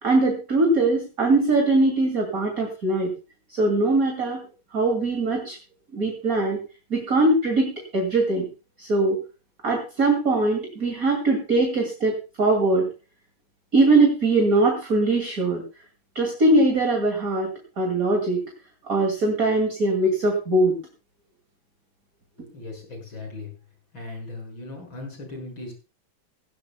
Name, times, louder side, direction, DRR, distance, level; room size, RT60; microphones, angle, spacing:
voice 1, 0.0-3.1 3.5-4.4 4.7-5.6 5.9-6.6 6.9-8.5 8.8-9.2 9.6-12.1 12.4-12.9 13.7-15.6 16.1-17.5 17.8-18.5 18.9-20.8, right 2 dB, 45° right, 2 dB, 2.9 m, -21 dB
voice 2, 22.4-23.5 23.9-25.7, left 2 dB, 70° left, 3 dB, 6.8 m, -38 dB
17.5 x 16.5 x 2.3 m, 0.31 s
omnidirectional pair, 2.2 m